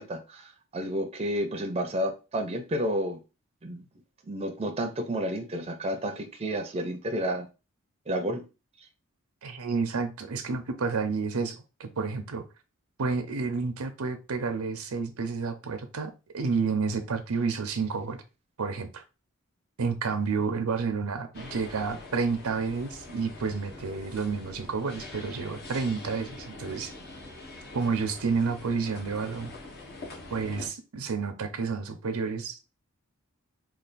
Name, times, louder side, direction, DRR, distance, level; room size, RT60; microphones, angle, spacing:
voice 1, 0.0-3.2 3.6-3.8 4.2-7.5 8.1-8.5, equal, 30° right, 0.5 m, -31 dB
voice 2, 9.4-12.4 13.0-18.2 18.6-19.0 19.8-26.9 27.7-29.5 30.3-32.6, right 4 dB, 85° right, 0.6 m, -30 dB
sound 1, 21.3-30.7, left 2 dB, 50° left, 1.0 m, -44 dB
3.3 x 2.4 x 3.9 m
head